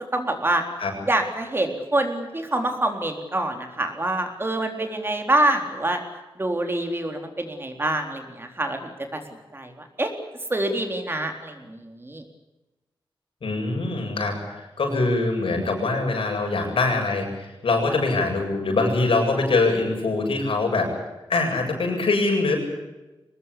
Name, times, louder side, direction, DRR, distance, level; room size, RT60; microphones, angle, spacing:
voice 1, 0.1-0.6 1.1-6.0 6.4-9.2 9.5-9.7 10.0-10.1 10.5-12.2, right 1 dB, 25° right, 4 dB, 3.8 m, -26 dB
voice 2, 13.4-20.9 21.3-22.6, left 3 dB, 85° left, 2 dB, 8.0 m, -23 dB
24.0 x 20.0 x 8.5 m, 1.1 s
wide cardioid pair, 130°, 9 cm